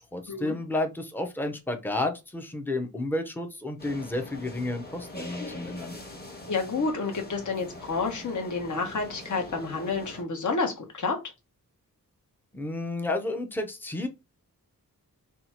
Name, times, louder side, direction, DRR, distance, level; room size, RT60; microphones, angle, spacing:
voice 1, 0.1-6.0 12.5-14.1, left 2 dB, 5° left, 0.6 m, -31 dB
sound 1, 3.8-10.2, left 1 dB, 25° left, 1.0 m, -43 dB
voice 2, 6.5-11.2, left 4 dB, 55° left, 1.1 m, -29 dB
2.8 x 2.3 x 4.1 m
wide cardioid pair, 95°, 35 cm